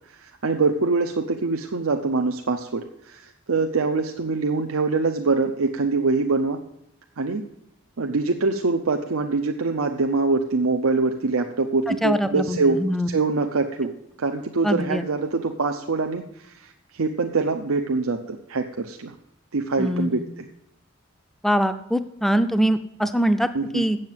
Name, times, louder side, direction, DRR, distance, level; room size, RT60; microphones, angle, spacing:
voice 1, 0.1-6.6 7.2-7.4 8.0-12.8 13.1-13.9 14.2-19.1 19.5-20.5 23.5-23.8, right 3 dB, 85° right, 4 dB, 0.7 m, -24 dB
voice 2, 11.9-13.1 14.6-15.0 19.8-20.2 21.4-23.5 23.7-24.0, equal, ahead, 11 dB, 0.4 m, -23 dB
7.9 x 7.8 x 7.4 m, 0.82 s
head